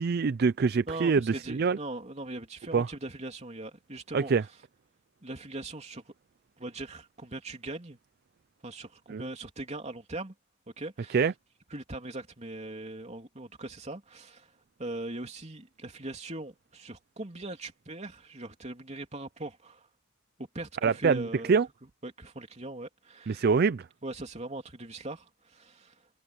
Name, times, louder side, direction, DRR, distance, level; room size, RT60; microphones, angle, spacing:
voice 1, 0.0-1.8 2.7-2.9 4.1-4.4 9.1-9.2 11.1-11.3 20.8-21.7 23.3-23.9, right 5 dB, 50° right, 0.4 m, -25 dB
voice 2, 0.9-4.3 5.2-6.1 6.6-8.0 8.6-10.3 10.8-11.3 11.7-14.5 14.8-19.9 20.4-21.5 22.0-23.5 24.0-25.9, right 2 dB, 35° right, 3.1 m, -40 dB
head